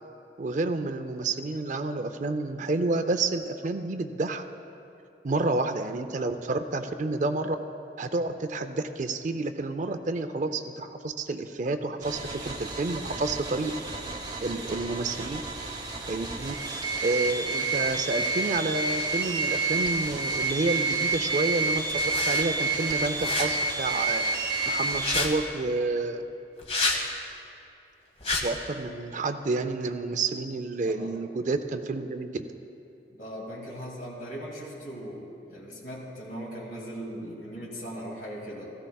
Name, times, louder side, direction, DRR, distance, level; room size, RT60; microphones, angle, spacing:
voice 1, 0.4-4.4 5.2-7.6 8.0-13.7 14.4-15.4 16.1-16.5 17.0-24.2 24.7-26.2 28.4-32.4, right 3 dB, 45° right, 9 dB, 0.5 m, -29 dB
sound 1, 12.0-25.2, right 3 dB, 25° right, 1.0 m, -29 dB
sound 2, 21.9-22.4 23.2-23.5 24.9-25.3 26.6-27.0 28.2-28.4, left 3 dB, 35° left, 1.2 m, -28 dB
voice 2, 33.1-38.7, equal, 50° left, -5 dB, 2.3 m, -39 dB
16.5 x 14.5 x 2.3 m, 2.7 s
head